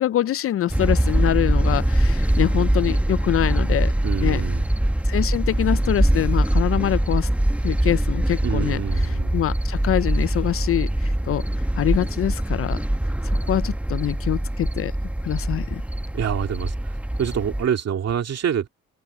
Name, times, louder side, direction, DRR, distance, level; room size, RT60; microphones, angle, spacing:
voice 1, 0.0-3.9 4.2-4.4 5.0-7.3 7.6-11.5 11.8-12.8 13.2-14.9 15.2-15.8, left 12 dB, 50° left, 0.4 m, -24 dB
sound 1, 0.7-17.7, right 1 dB, 5° right, 1.0 m, -23 dB
voice 2, 4.0-4.6 8.4-9.3 16.1-16.9 17.2-18.7, right 8 dB, 55° right, 2.4 m, -26 dB
open air
cardioid pair, 90°, 30 cm